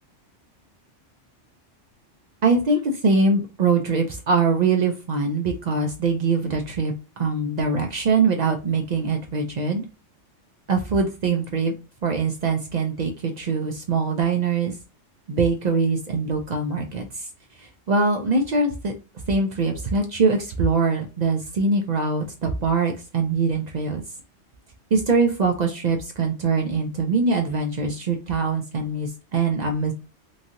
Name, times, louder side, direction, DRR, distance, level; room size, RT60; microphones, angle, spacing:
voice 1, 2.4-9.8 10.7-11.7 12.0-14.7 15.3-17.3 17.6-18.9 19.3-24.0 24.9-29.9, right 4 dB, 60° right, 2 dB, 0.4 m, -23 dB
3.1 x 2.7 x 2.5 m, 0.31 s
omnidirectional pair, 1.2 m